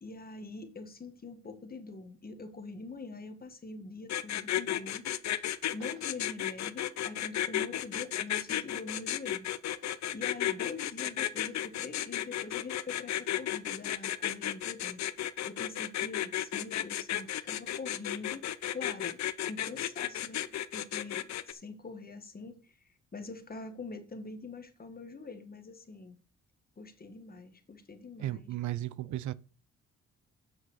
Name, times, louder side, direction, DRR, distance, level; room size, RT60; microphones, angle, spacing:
voice 1, 0.0-5.1 5.4-5.5 5.7-9.5 9.8-20.4 20.7-22.8 23.1-26.2 26.8-28.5, left 3 dB, 30° left, 1.9 m, -44 dB
sound 1, 4.1-21.5, left 12 dB, 65° left, 0.8 m, -33 dB
voice 2, 28.2-29.3, right 14 dB, 75° right, 0.6 m, -35 dB
7.8 x 6.2 x 6.5 m
cardioid pair, 90°, 30 cm